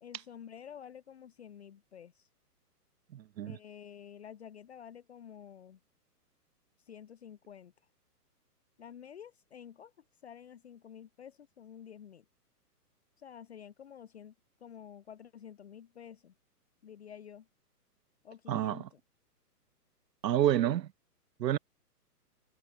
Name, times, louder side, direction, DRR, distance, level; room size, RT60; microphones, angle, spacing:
voice 1, 0.0-2.3 3.4-5.8 6.8-7.7 8.8-9.9 10.2-12.2 13.2-14.3 14.6-16.3 16.8-17.5 18.2-19.0, left 8 dB, 40° left, 1.3 m, -50 dB
voice 2, 3.1-3.6 18.5-18.9 20.2-20.9 21.4-21.6, right 11 dB, 90° right, 0.8 m, -29 dB
hypercardioid pair, 180°, 48 cm